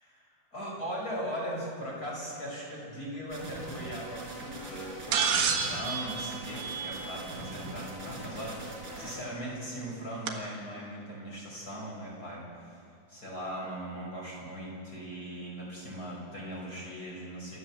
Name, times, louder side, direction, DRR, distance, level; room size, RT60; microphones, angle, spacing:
voice 1, 0.5-12.8 13.1-17.6, equal, 20° left, -3 dB, 5.6 m, -39 dB
sound 1, 3.3-9.2, right 2 dB, 20° right, 5.3 m, -42 dB
sound 2, 5.1-7.4 9.0-9.1 10.3-10.4, right 6 dB, 65° right, 3.2 m, -30 dB
28.0 x 13.5 x 7.5 m, 2.5 s
omnidirectional pair, 5.7 m